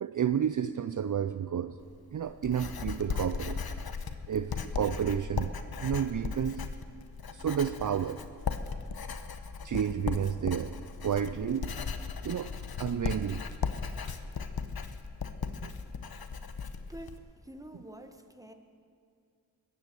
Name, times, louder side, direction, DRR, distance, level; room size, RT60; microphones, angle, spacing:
voice 1, 0.0-1.8 2.1-3.6 4.3-5.5 5.8-6.7 7.3-8.2 9.6-10.7 11.0-11.7 12.2-12.5 12.8-13.5 15.6-15.7, right 8 dB, 50° right, 11 dB, 0.5 m, -31 dB
Writing, 1.8-17.2, left 5 dB, 65° left, 1.0 m, -37 dB
voice 2, 16.9-18.5, right 1 dB, 10° right, 6 dB, 1.4 m, -47 dB
21.0 x 9.7 x 6.8 m, 2.3 s
cardioid pair, 50°, 40 cm